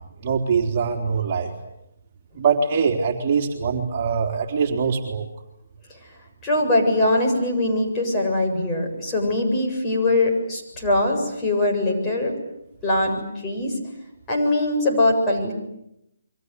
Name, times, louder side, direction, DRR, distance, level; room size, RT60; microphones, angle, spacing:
voice 1, 0.2-1.5 2.3-5.2, right 5 dB, 35° right, 1 dB, 3.6 m, -23 dB
voice 2, 6.4-12.4 12.8-13.8 14.3-15.5, left 1 dB, 20° left, 0 dB, 7.4 m, -22 dB
29.0 x 24.5 x 8.3 m, 0.82 s
hypercardioid pair, 150°, 0 cm